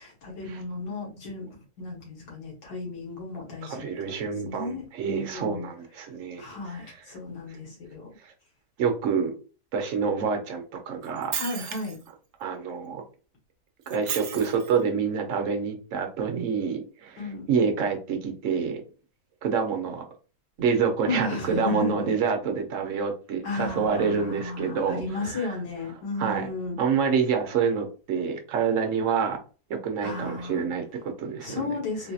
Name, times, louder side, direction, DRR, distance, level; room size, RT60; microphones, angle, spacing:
voice 1, 0.0-3.9 4.3-5.7 6.4-8.1 11.3-12.0 17.2-17.4 21.0-22.1 23.4-26.8 30.0-30.6 31.4-32.1, left 3 dB, 90° left, -2 dB, 2.0 m, -34 dB
voice 2, 3.6-6.4 8.2-8.3 8.8-9.3 9.7-11.3 12.4-13.0 13.9-18.8 19.4-20.0 20.6-25.0 25.3-25.5 26.2-26.5 26.8-29.4 29.7-31.7, right 6 dB, 55° right, 4 dB, 1.0 m, -27 dB
Shatter, 11.0-12.1 13.9-14.8, right 9 dB, 75° right, 0.6 m, -34 dB
3.9 x 2.8 x 2.4 m, 0.36 s
omnidirectional pair, 1.8 m